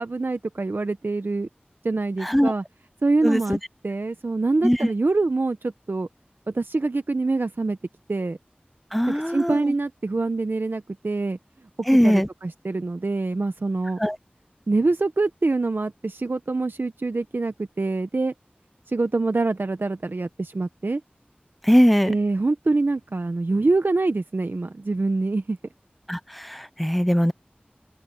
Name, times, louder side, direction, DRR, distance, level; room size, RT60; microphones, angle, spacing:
voice 1, 0.0-1.5 1.8-2.6 3.0-6.1 6.5-7.8 8.1-8.4 9.1-11.4 12.0-14.0 14.7-18.3 18.9-21.0 22.1-25.6, right 3 dB, 75° right, 0.8 m, -25 dB
voice 2, 2.2-2.5 3.2-3.6 4.6-4.9 8.9-9.7 11.9-12.3 14.0-14.2 21.6-22.1 26.1-27.3, equal, ahead, 0.4 m, -20 dB
open air
wide cardioid pair, 40°, 4 cm